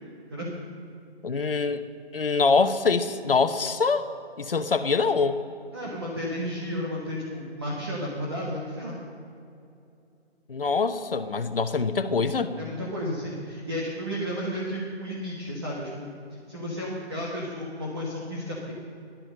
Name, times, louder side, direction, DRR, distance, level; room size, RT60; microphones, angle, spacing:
voice 1, 1.2-1.8 2.1-4.1 4.4-5.4 10.5-12.5, left 4 dB, 55° left, 10 dB, 1.0 m, -24 dB
voice 2, 5.7-9.0 12.6-16.1 16.5-18.7, equal, 25° right, -4 dB, 1.4 m, -32 dB
16.0 x 12.0 x 6.5 m, 2.7 s
hypercardioid pair, 175°, 33 cm